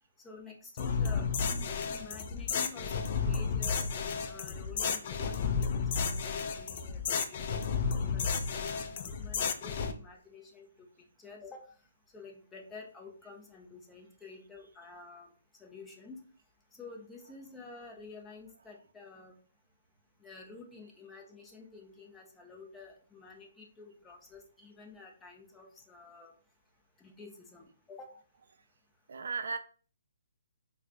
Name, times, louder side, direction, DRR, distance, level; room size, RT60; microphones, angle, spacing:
voice 1, 0.2-3.9 4.2-6.2 6.6-7.8 8.1-10.9 11.2-11.7 12.1-15.3 15.6-16.2 16.7-19.3 20.2-26.3 27.0-28.1, left 3 dB, 10° left, 0.7 m, -50 dB
sound 1, 0.8-9.9, left 5 dB, 45° left, 0.4 m, -32 dB
voice 2, 29.1-29.6, right 4 dB, 70° right, 0.4 m, -36 dB
4.6 x 2.2 x 2.6 m
hypercardioid pair, 140°, 0 cm